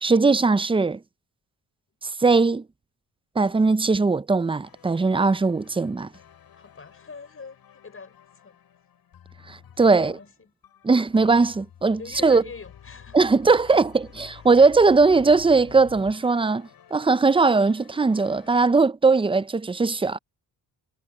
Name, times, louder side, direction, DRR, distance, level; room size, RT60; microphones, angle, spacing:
voice 1, 0.0-1.0 2.0-2.6 3.4-6.1 9.5-10.2 10.8-12.4 13.1-20.2, right 4 dB, 15° right, 0.5 m, -20 dB
sound 1, 4.6-18.6, left 9 dB, 75° left, 7.7 m, -50 dB
voice 2, 6.5-8.6 9.7-10.5 11.9-13.2 13.5-13.8 14.3-14.7, left 5 dB, 35° left, 6.2 m, -44 dB
cardioid pair, 105°, 37 cm